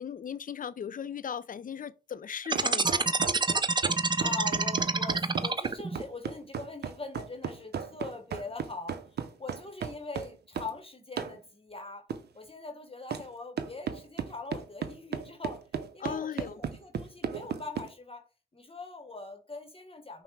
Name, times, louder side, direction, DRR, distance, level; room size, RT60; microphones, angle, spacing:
voice 1, 0.0-3.2 16.0-16.6, left 8 dB, 55° left, 0.4 m, -37 dB
sound 1, 2.5-6.0, right 3 dB, 25° right, 0.4 m, -27 dB
sound 2, 2.5-10.8 11.2-11.4 12.1-12.2 13.1-13.3 13.6-17.9, right 7 dB, 80° right, 0.5 m, -35 dB
voice 2, 3.9-9.0 9.4-12.1 12.3-15.6 15.9-18.2 18.5-20.2, left 3 dB, 35° left, 0.8 m, -42 dB
5.7 x 2.1 x 4.4 m
cardioid pair, 45°, 17 cm